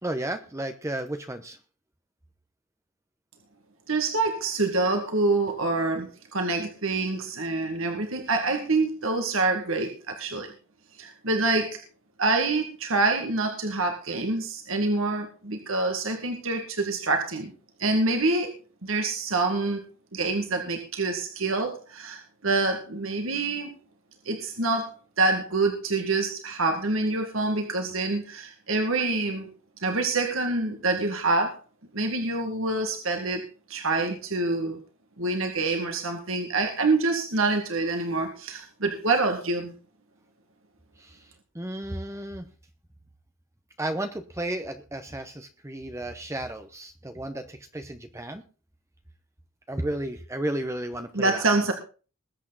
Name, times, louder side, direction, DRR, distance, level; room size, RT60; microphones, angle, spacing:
voice 1, 0.0-1.6 41.0-41.3 41.5-42.5 43.8-48.4 49.7-51.5, right 1 dB, 15° right, 7 dB, 0.9 m, -33 dB
voice 2, 3.9-10.5 11.0-11.8 12.2-17.5 17.8-18.5 18.8-19.8 20.1-23.7 24.2-29.5 29.8-31.6 31.9-33.4 33.7-34.8 35.2-39.7 51.1-51.7, right 3 dB, 70° right, 4 dB, 2.1 m, -26 dB
21.0 x 8.5 x 4.1 m, 0.37 s
head